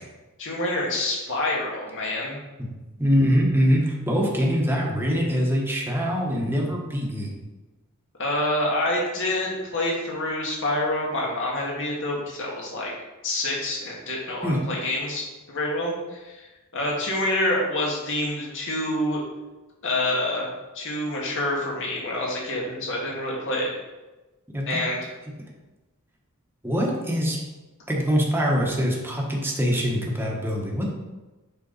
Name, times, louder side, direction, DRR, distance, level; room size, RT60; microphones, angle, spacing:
voice 1, 0.4-2.4 8.2-12.9 13.2-19.2 19.8-20.5 20.7-23.7 24.7-25.0, left 1 dB, 60° left, -3 dB, 2.0 m, -27 dB
voice 2, 3.0-7.3 14.4-14.6 24.5-24.7 26.6-27.4 27.9-30.9, equal, 10° right, -2 dB, 1.3 m, -23 dB
7.0 x 5.7 x 4.1 m, 1.1 s
head